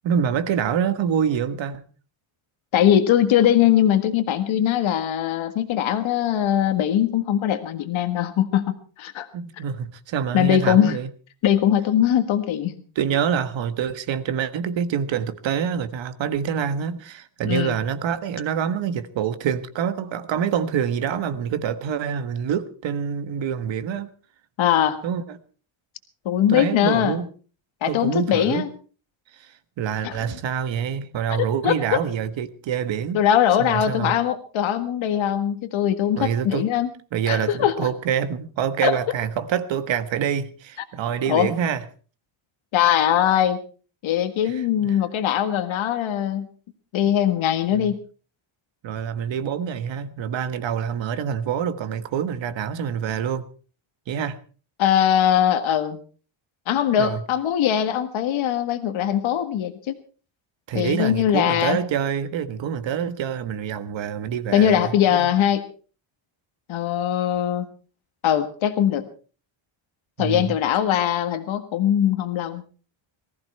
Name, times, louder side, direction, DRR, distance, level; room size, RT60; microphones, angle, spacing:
voice 1, 0.0-1.8 9.3-11.1 12.9-24.1 25.0-25.4 26.5-27.3 27.9-28.7 29.3-33.2 33.6-34.2 36.2-36.7 37.1-41.8 44.4-45.0 47.7-47.9 48.8-53.5 54.1-54.4 57.0-57.2 60.7-65.3 70.2-70.6, right 8 dB, 65° right, 1.5 m, -26 dB
voice 2, 2.7-9.3 10.3-11.0 11.4-12.7 17.5-17.8 24.6-25.0 26.3-27.2 27.8-28.7 30.0-30.2 31.3-31.8 33.1-36.9 37.3-37.7 38.8-39.0 41.3-41.5 42.7-43.6 44.0-46.5 46.9-48.0 54.8-56.0 56.7-59.9 60.7-61.8 64.5-65.6 66.7-67.7 68.2-69.1 70.2-72.6, left 10 dB, 70° left, 1.7 m, -21 dB
19.5 x 14.5 x 4.5 m
cardioid pair, 135°, 49 cm